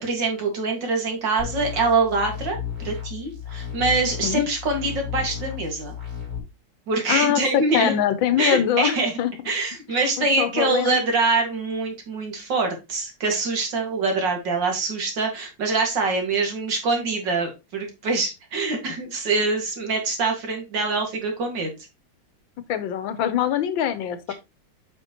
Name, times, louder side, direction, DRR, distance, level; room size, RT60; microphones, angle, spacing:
voice 1, 0.0-2.6 2.8-5.9 6.9-8.0 8.4-9.1 9.5-21.7, right 3 dB, 65° right, 2.6 m, -24 dB
sound 1, 1.4-6.4, left 9 dB, 30° right, 3.1 m, -34 dB
voice 2, 7.1-9.3 10.2-11.0 22.7-24.3, left 10 dB, 75° left, 1.5 m, -23 dB
7.9 x 5.4 x 2.9 m
omnidirectional pair, 2.2 m